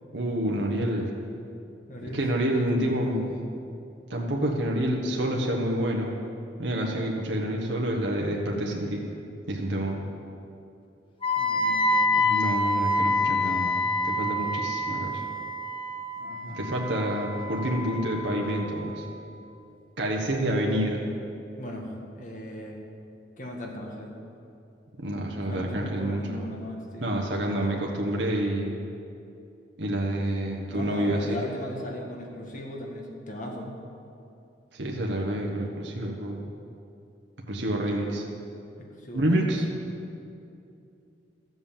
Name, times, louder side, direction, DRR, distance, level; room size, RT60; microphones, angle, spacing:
voice 1, 0.1-1.1 2.0-3.3 4.1-6.1 6.6-9.0 9.5-10.0 12.2-15.2 16.4-19.1 20.0-21.0 25.0-26.5 27.0-28.7 29.8-31.4 34.7-36.4 37.5-38.2 39.1-39.6, right 1 dB, 65° right, -1 dB, 1.3 m, -28 dB
voice 2, 1.9-3.3 11.4-12.4 16.2-16.6 21.6-22.8 23.4-24.2 25.5-27.1 30.7-33.7 38.8-39.6, left 1 dB, 45° left, 1 dB, 1.7 m, -38 dB
Wind instrument woodwind instrument, 11.2-19.1, left 2 dB, 30° left, 1.1 m, -27 dB
13.0 x 7.9 x 7.3 m, 2.7 s
head